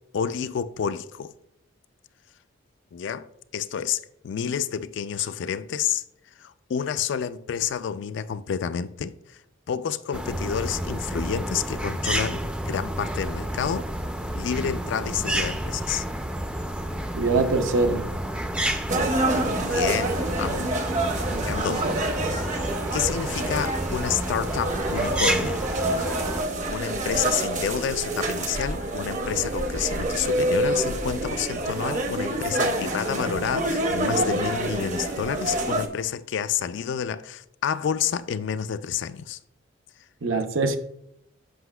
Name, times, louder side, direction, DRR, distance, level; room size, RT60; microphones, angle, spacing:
voice 1, 0.1-1.3 2.9-3.3 3.5-6.0 6.4-9.4 9.7-13.9 14.4-16.1 19.7-20.7 21.4-21.9 22.4-25.6 26.1-26.2 26.7-39.4, left 8 dB, 65° left, 0.3 m, -29 dB
sound 1, 10.1-26.4, right 1 dB, 5° right, 0.4 m, -30 dB
voice 2, 17.1-18.1 21.3-22.0 40.2-40.8, right 3 dB, 80° right, 0.7 m, -24 dB
sound 2, 18.9-35.9, right 1 dB, 40° right, 0.7 m, -27 dB
7.8 x 5.5 x 2.3 m
head